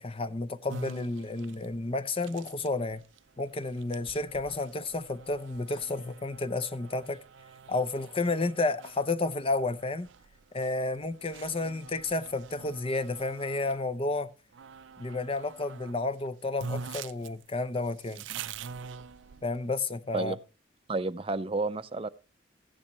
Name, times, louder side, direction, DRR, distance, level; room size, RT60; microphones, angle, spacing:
voice 1, 0.0-3.0 3.4-7.2 7.7-10.1 10.5-14.3 15.0-18.2 19.4-20.4, left 2 dB, 30° left, 0.6 m, -31 dB
sound 1, 0.7-13.9 14.5-16.0 16.2-16.3 16.6-19.7, right 5 dB, 80° right, 0.5 m, -45 dB
voice 2, 20.9-22.1, right 3 dB, 30° right, 0.5 m, -31 dB
15.0 x 10.0 x 3.1 m
head